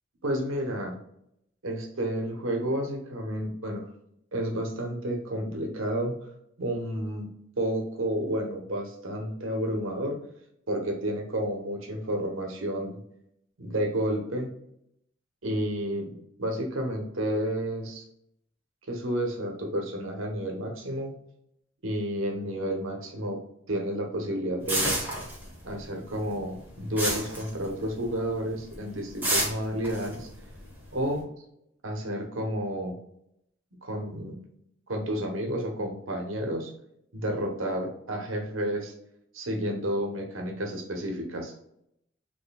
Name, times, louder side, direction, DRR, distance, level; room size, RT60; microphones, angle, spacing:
voice 1, 0.2-1.0 1.6-3.8 4.3-6.2 6.6-7.3 7.6-10.2 10.7-13.0 13.6-14.5 15.4-18.0 18.9-21.1 21.8-23.4 23.7-24.9 25.6-30.3 30.9-31.2 31.8-33.0 33.8-34.4 34.9-36.7 37.1-38.9 39.3-41.5, right 1 dB, 80° right, 2 dB, 1.0 m, -31 dB
sound 1, 24.7-25.8 26.1-28.1 28.5-28.7 29.2-31.1, right 1 dB, 10° right, 1.1 m, -29 dB
4.3 x 3.1 x 2.3 m, 0.75 s
head